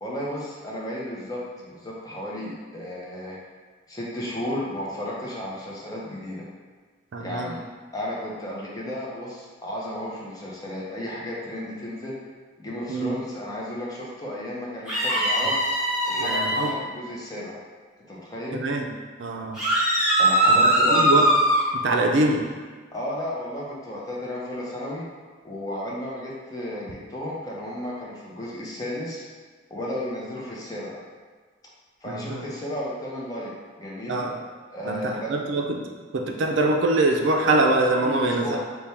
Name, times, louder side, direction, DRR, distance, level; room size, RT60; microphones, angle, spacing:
voice 1, 0.0-3.4 3.9-6.5 7.2-7.6 7.9-12.2 12.6-15.6 16.0-17.6 18.1-18.6 20.1-21.1 22.9-25.1 25.4-29.3 29.7-30.9 32.0-34.2 34.7-35.3 38.0-38.6, left 1 dB, 20° left, -5 dB, 0.6 m, -33 dB
voice 2, 7.1-7.6 12.9-13.2 16.2-16.7 18.5-18.9 19.2-19.6 20.5-21.3 21.7-22.5 32.1-32.5 34.1-34.3 34.8-38.6, right 2 dB, 70° right, 2 dB, 0.4 m, -24 dB
sound 1, 14.9-16.7 19.6-21.6, right 1 dB, ahead, 1.3 m, -20 dB
3.4 x 2.2 x 4.2 m, 1.5 s
head